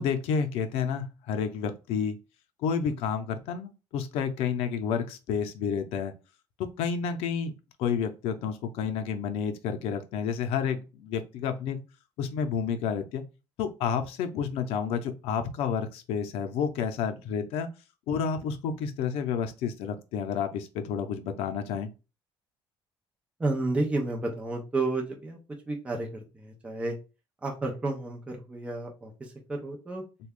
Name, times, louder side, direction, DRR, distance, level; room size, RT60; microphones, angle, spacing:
voice 1, 0.0-2.2 2.6-6.1 6.8-7.5 7.8-11.8 12.2-13.2 13.6-17.7 18.1-21.9, left 7 dB, 90° left, 0.5 m, -30 dB
voice 2, 23.4-25.4 25.7-27.0 27.4-30.0, right 2 dB, 10° right, 0.6 m, -31 dB
3.2 x 2.2 x 3.5 m
cardioid pair, 175°, 10 cm